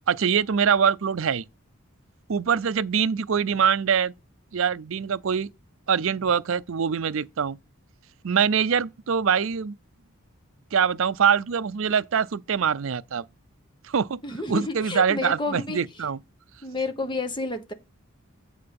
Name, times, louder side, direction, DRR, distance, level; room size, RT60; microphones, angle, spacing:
voice 1, 0.1-1.4 2.3-4.1 4.5-5.5 5.9-7.6 8.2-9.7 10.7-13.3 13.8-14.2 14.5-16.2, right 7 dB, 70° right, 0.5 m, -24 dB
voice 2, 14.2-15.8 16.6-17.7, left 3 dB, 20° left, 1.2 m, -30 dB
8.7 x 4.6 x 5.2 m
head